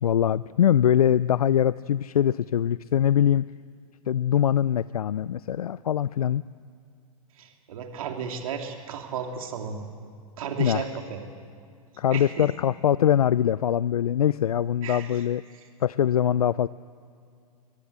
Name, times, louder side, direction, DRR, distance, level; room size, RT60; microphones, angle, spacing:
voice 1, 0.0-3.4 4.1-6.4 10.6-10.8 12.0-15.4 15.8-16.7, left 10 dB, 85° left, 18 dB, 0.5 m, -23 dB
voice 2, 7.4-9.8 10.4-11.2 12.1-12.5 14.8-15.1, right 6 dB, 70° right, 3 dB, 2.8 m, -34 dB
23.0 x 20.5 x 8.2 m, 2.3 s
hypercardioid pair, 115°, 19 cm